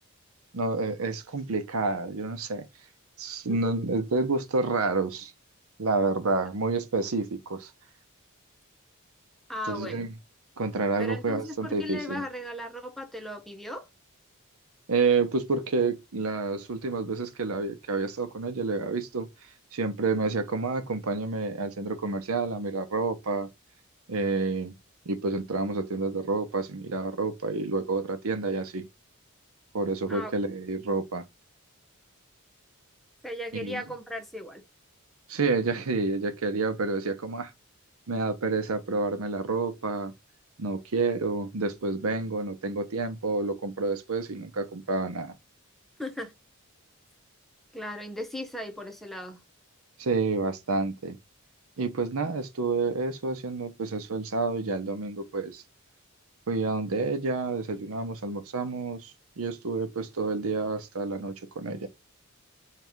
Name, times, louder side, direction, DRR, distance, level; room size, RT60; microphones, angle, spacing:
voice 1, 0.5-2.7 3.2-5.3 5.8-7.7 9.7-10.1 10.6-12.2 14.9-19.3 19.7-23.5 24.1-24.7 25.1-28.9 29.7-31.3 33.5-33.8 35.3-37.5 38.1-40.1 40.6-45.3 50.0-51.2 51.8-55.6 56.5-61.9, right 3 dB, 75° right, 0.7 m, -29 dB
voice 2, 9.5-10.1 11.0-13.9 30.1-30.3 33.2-34.6 46.0-46.3 47.7-49.4, equal, ahead, 0.7 m, -37 dB
4.6 x 2.4 x 3.4 m
head